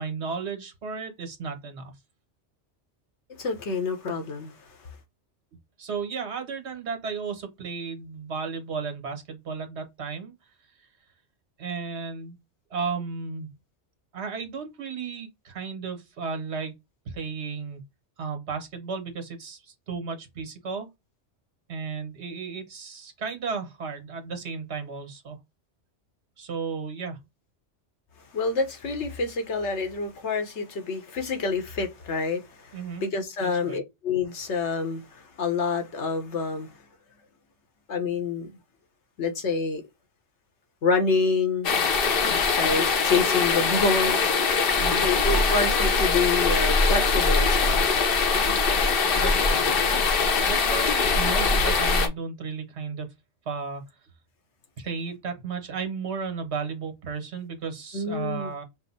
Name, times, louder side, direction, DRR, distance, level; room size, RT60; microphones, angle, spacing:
voice 1, 0.0-1.9 5.8-10.3 11.6-12.4 12.7-13.5 14.1-16.7 17.0-17.8 18.2-20.9 21.7-25.4 26.4-27.2 32.7-33.0 33.4-33.8 44.8-45.1 49.1-49.7 50.5-53.1 53.4-53.8 54.8-58.6, right 5 dB, 70° right, 1.3 m, -34 dB
voice 2, 3.4-4.5 28.3-36.8 37.9-38.5 39.2-39.8 40.8-41.7 42.6-44.2 45.0-47.9 57.9-58.5, left 4 dB, 80° left, 1.2 m, -27 dB
sound 1, 41.6-52.1, left 4 dB, 60° left, 0.9 m, -22 dB
5.2 x 2.0 x 4.0 m
omnidirectional pair, 1.2 m